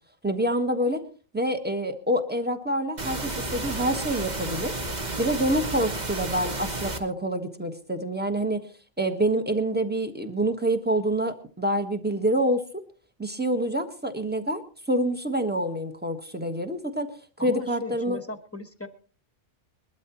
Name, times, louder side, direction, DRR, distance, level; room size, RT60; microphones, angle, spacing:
voice 1, 0.2-1.0 1.3-4.8 5.2-8.6 9.0-12.8 13.2-14.6 14.9-17.1 17.4-18.2, right 1 dB, 10° right, 7 dB, 1.2 m, -26 dB
sound 1, 3.0-7.0, right 2 dB, 35° right, 1.4 m, -32 dB
voice 2, 17.4-18.9, left 2 dB, 10° left, 9 dB, 1.1 m, -37 dB
21.5 x 12.5 x 3.0 m, 0.39 s
omnidirectional pair, 1.2 m